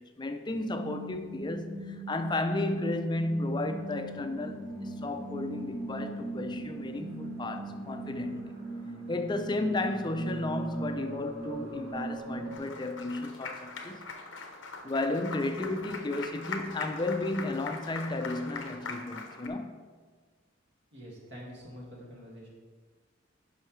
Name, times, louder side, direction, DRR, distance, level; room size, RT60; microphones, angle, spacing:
voice 1, 0.0-8.5 9.1-14.0 14.8-19.8, left 2 dB, 25° left, 0.5 m, -33 dB
sound 1, 0.7-12.6, right 2 dB, 50° right, 2.6 m, -40 dB
Applause, 12.5-19.5, left 4 dB, 85° left, 0.9 m, -41 dB
voice 2, 20.9-22.5, equal, 65° right, 2.1 m, -46 dB
11.0 x 5.6 x 3.2 m
head